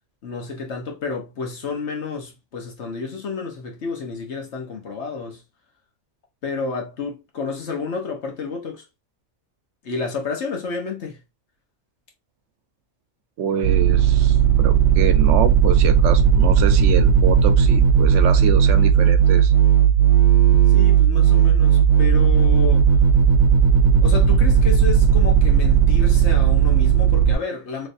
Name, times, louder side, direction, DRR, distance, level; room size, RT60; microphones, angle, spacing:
voice 1, 0.2-5.4 6.4-8.8 9.8-11.2 20.7-22.9 24.0-27.9, left 4 dB, 70° left, 1.3 m, -30 dB
voice 2, 13.4-19.5, right 8 dB, 80° right, 0.9 m, -26 dB
sound 1, 13.6-27.3, right 7 dB, 50° right, 0.6 m, -15 dB
3.2 x 3.2 x 2.5 m
omnidirectional pair, 1.2 m